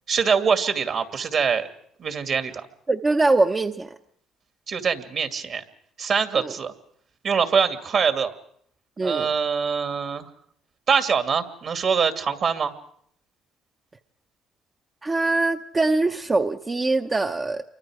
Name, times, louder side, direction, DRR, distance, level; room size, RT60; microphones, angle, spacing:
voice 1, 0.1-1.7 2.0-2.7 4.7-5.6 6.0-6.7 7.2-8.3 9.0-10.3 10.9-12.7, right 6 dB, 55° right, 7 dB, 2.5 m, -23 dB
voice 2, 2.9-4.0 6.4-6.5 9.0-9.3 15.0-17.6, right 2 dB, 25° right, 5 dB, 0.9 m, -23 dB
28.5 x 24.0 x 5.0 m, 0.66 s
supercardioid pair, 75°, 0 cm